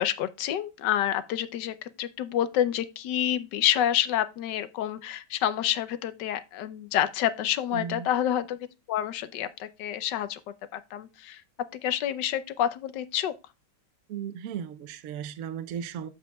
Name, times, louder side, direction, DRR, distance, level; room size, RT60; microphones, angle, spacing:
voice 1, 0.0-8.6 8.9-10.4 10.7-11.4 11.8-13.3, left 11 dB, 70° left, 1.2 m, -28 dB
voice 2, 7.7-8.1 14.1-16.1, right 8 dB, 65° right, 0.8 m, -36 dB
13.5 x 4.8 x 2.3 m
omnidirectional pair, 2.1 m